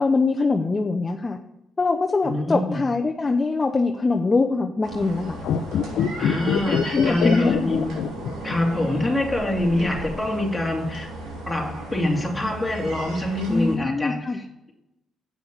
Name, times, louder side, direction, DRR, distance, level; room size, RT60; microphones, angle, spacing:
voice 1, 0.0-1.4 1.8-5.4 6.9-7.7 13.5-14.4, left 3 dB, 25° left, 4 dB, 0.7 m, -23 dB
voice 2, 2.2-2.8 6.2-7.9 8.4-11.1 11.5-14.7, left 1 dB, 10° left, -1 dB, 2.6 m, -25 dB
sound 1, 4.8-13.8, right 1 dB, 85° right, 3.6 m, -35 dB
sound 2, 5.4-8.8 9.0-9.1, left 8 dB, 75° left, 0.6 m, -24 dB
8.5 x 6.1 x 7.1 m, 0.90 s
cardioid pair, 90°, 0 cm